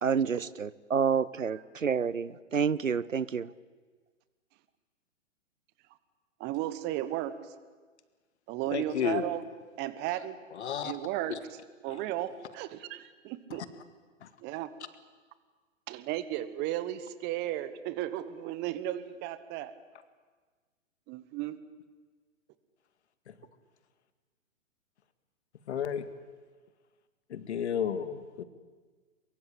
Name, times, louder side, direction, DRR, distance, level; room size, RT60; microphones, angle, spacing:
voice 1, 0.0-3.5, right 6 dB, 90° right, 21 dB, 0.9 m, -29 dB
voice 2, 6.4-7.3 8.5-9.4 9.8-10.4 10.8-11.4 11.8-13.6 14.4-14.7 15.9-19.7 21.1-21.6, right 13 dB, 25° right, 14 dB, 1.3 m, -34 dB
voice 3, 8.7-9.3 10.5-10.9 11.3-11.4 11.9-12.0 14.2-14.3 23.3-23.4 25.7-26.0 27.3-28.4, left 8 dB, 60° left, 12 dB, 2.1 m, -32 dB
23.0 x 23.0 x 8.8 m, 1.4 s
figure-of-eight pair, 120°, 38 cm